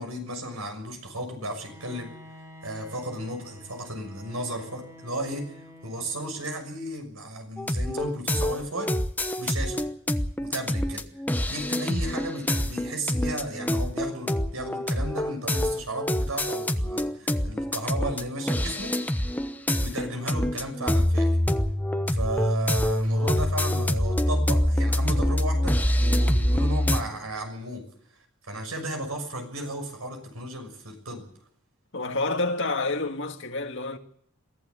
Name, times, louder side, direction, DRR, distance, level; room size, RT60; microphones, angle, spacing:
voice 1, 0.0-2.1 2.6-5.6 5.8-8.9 9.4-9.8 10.4-11.1 11.5-19.0 19.8-21.4 22.1-27.9 28.5-31.2, right 1 dB, 85° right, 6.3 m, -34 dB
Bowed string instrument, 1.4-6.8, left 1 dB, 15° right, 4.1 m, -49 dB
sound 1, 7.6-27.0, left 1 dB, 10° left, 1.0 m, -25 dB
voice 2, 31.9-34.0, left 2 dB, 60° left, 2.1 m, -29 dB
23.0 x 15.0 x 8.3 m
head